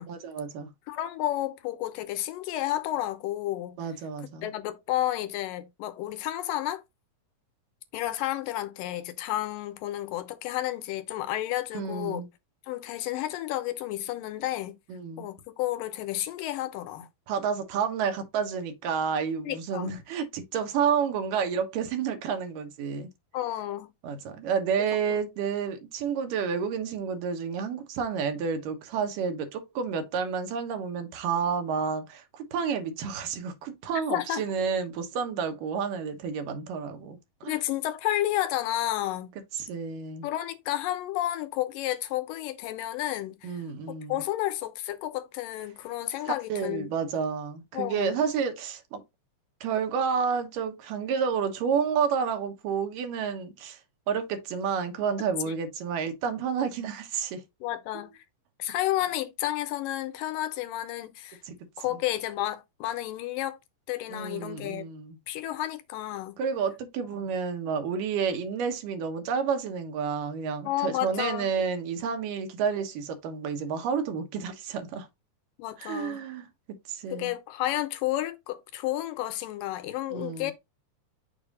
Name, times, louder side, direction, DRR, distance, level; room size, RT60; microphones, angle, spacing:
voice 1, 0.1-0.7 3.8-4.5 11.7-12.3 14.9-15.3 17.3-23.1 24.0-37.5 39.6-40.3 43.4-44.2 46.2-49.0 49.6-53.8 54.1-57.4 61.5-61.6 64.1-65.2 66.4-75.1 75.8-76.5 76.9-77.3 80.1-80.5, right 6 dB, 80° right, 2.7 m, -30 dB
voice 2, 0.9-3.8 4.4-6.8 7.9-12.3 12.7-14.8 15.2-17.1 19.5-19.9 23.3-23.9 25.1-25.2 34.1-34.4 37.4-39.3 40.2-43.6 44.1-47.0 47.7-48.2 55.5-55.6 57.6-58.2 58.6-61.4 61.8-63.6 63.9-64.9 65.3-66.4 67.0-67.3 70.6-71.5 75.6-76.2 77.1-80.5, left 14 dB, 85° left, 2.5 m, -31 dB
6.7 x 2.7 x 5.3 m
omnidirectional pair, 3.8 m